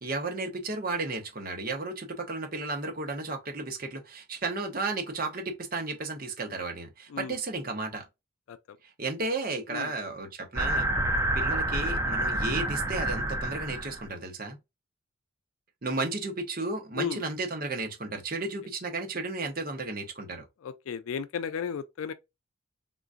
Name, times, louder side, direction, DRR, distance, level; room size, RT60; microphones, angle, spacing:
voice 1, 0.0-8.1 9.0-10.9 11.3-14.6 15.8-20.5, right 3 dB, 45° right, 0.8 m, -33 dB
sound 1, 10.6-14.1, right 1 dB, 15° right, 0.4 m, -28 dB
voice 2, 20.6-22.1, left 6 dB, 85° left, 0.4 m, -35 dB
3.7 x 2.4 x 2.5 m
head